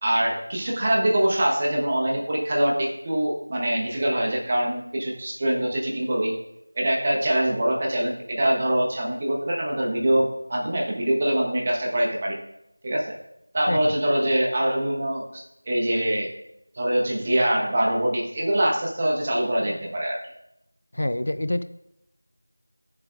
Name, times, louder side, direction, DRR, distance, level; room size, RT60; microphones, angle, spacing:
voice 1, 0.0-6.4 6.7-12.4 12.8-13.1 13.5-16.3 16.7-20.2, right 1 dB, 25° right, -2 dB, 1.3 m, -24 dB
voice 2, 20.9-21.6, left 1 dB, 50° left, 12 dB, 0.4 m, -26 dB
13.0 x 7.3 x 2.6 m, 0.83 s
figure-of-eight pair, 175°, 0 cm